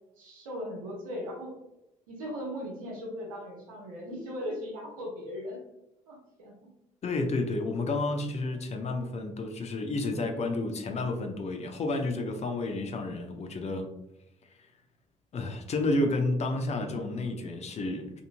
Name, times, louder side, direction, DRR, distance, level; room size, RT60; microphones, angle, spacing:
voice 1, 0.2-1.5 2.1-5.6 6.1-6.5, equal, 90° right, -2 dB, 0.8 m, -38 dB
voice 2, 7.0-13.9 15.3-18.2, left 2 dB, 40° left, 4 dB, 0.6 m, -31 dB
2.9 x 2.6 x 2.5 m, 0.90 s
hypercardioid pair, 55°, 17 cm